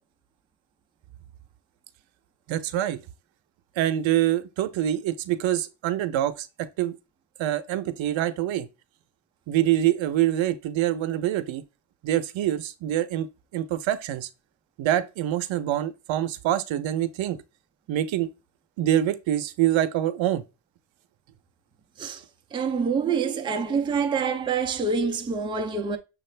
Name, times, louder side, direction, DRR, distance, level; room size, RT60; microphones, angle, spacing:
voice 1, 2.5-3.0 3.8-7.0 7.4-8.7 9.5-11.6 12.0-13.3 13.5-14.3 14.8-17.4 17.9-18.3 18.8-20.4, right 12 dB, 75° right, 0.7 m, -25 dB
voice 2, 22.5-26.0, right 5 dB, 10° right, 0.4 m, -26 dB
6.5 x 2.4 x 3.2 m
cardioid pair, 160°, 46 cm